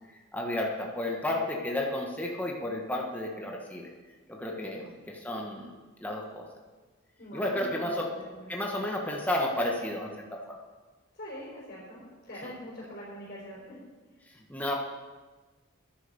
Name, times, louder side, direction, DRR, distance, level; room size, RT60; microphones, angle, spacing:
voice 1, 0.3-3.9 4.3-5.7 6.0-6.5 7.3-8.1 8.5-10.6 14.5-14.7, left 1 dB, 10° left, -1 dB, 1.3 m, -32 dB
voice 2, 4.6-5.0 7.2-8.8 11.1-13.8, equal, 45° left, -6 dB, 4.4 m, -44 dB
10.5 x 9.4 x 6.8 m, 1.3 s
head